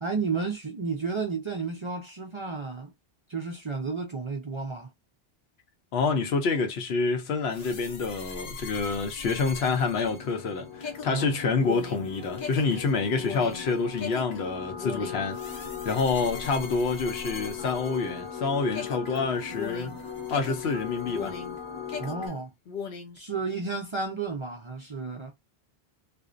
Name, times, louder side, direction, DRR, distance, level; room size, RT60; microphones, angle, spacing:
voice 1, 0.0-2.9 3.3-4.9 11.1-11.3 16.5-16.7 22.0-22.5 23.1-25.3, right 4 dB, 40° right, 0.4 m, -32 dB
voice 2, 5.9-15.4 15.8-19.9 20.3-21.3, left 4 dB, 85° left, 0.9 m, -27 dB
sound 1, 7.5-18.4 18.7-21.6 21.9-23.2, left 5 dB, 65° left, 0.7 m, -40 dB
sound 2, 8.3-22.3, left 7 dB, 30° left, 0.7 m, -40 dB
2.4 x 2.1 x 2.4 m
omnidirectional pair, 1.0 m